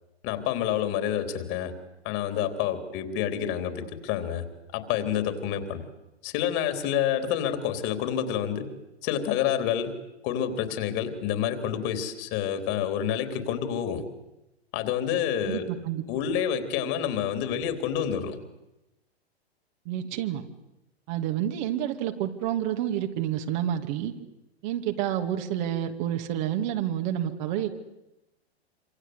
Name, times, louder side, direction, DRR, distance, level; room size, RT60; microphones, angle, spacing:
voice 1, 0.2-1.7 2.0-4.4 4.7-5.8 6.2-8.7 9.0-10.0 10.2-14.0 14.7-15.7 16.1-18.4, left 9 dB, 40° left, 8 dB, 3.8 m, -28 dB
voice 2, 15.5-16.0 19.9-20.4 21.1-24.1 24.6-27.8, right 11 dB, 45° right, 5 dB, 2.6 m, -29 dB
27.0 x 26.0 x 8.2 m, 0.94 s
figure-of-eight pair, 105°, 32 cm